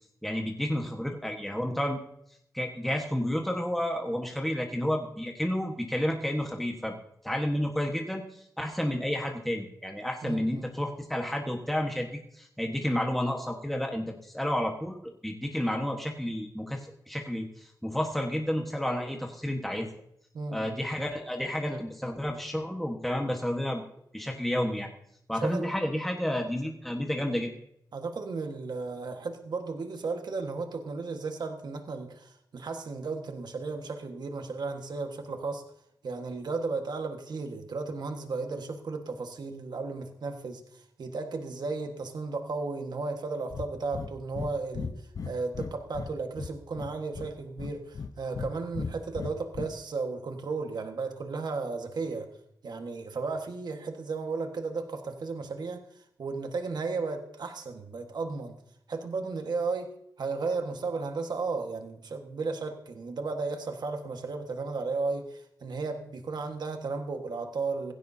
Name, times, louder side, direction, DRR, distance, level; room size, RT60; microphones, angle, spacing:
voice 1, 0.2-2.0 2.5-6.9 7.2-15.0 15.2-16.8 17.1-19.9 20.5-23.8 24.1-24.9 25.3-27.5, equal, ahead, 1 dB, 1.3 m, -31 dB
voice 2, 10.2-10.7 20.3-20.7 25.4-25.7 27.9-35.6 36.0-52.3 52.6-58.6 58.9-59.9 60.2-67.9, right 4 dB, 65° right, 5 dB, 1.5 m, -34 dB
Breathing, 43.5-43.7 43.9-44.1 44.3-44.5 44.7-46.1 46.4-47.3 47.6-48.5 48.7-49.7, left 5 dB, 50° left, 0.8 m, -36 dB
17.5 x 15.5 x 2.8 m, 0.73 s
wide cardioid pair, 130°, 8 cm